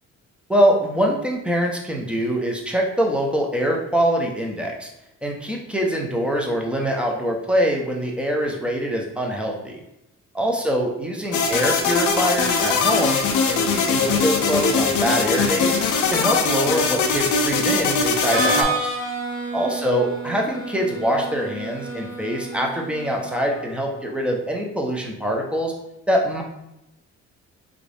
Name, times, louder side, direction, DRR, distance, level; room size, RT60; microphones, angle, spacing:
voice 1, 0.5-4.9 5.2-9.8 10.3-13.2 13.5-15.8 16.1-19.0 19.5-25.7 26.1-26.4, equal, 5° right, 0 dB, 0.7 m, -24 dB
sound 1, 11.3-18.6, left 4 dB, 70° left, 0.6 m, -21 dB
Harmonica, 18.1-23.9, right 2 dB, 45° right, 1.1 m, -30 dB
3.6 x 2.5 x 3.4 m, 0.84 s
cardioid pair, 90°, 30 cm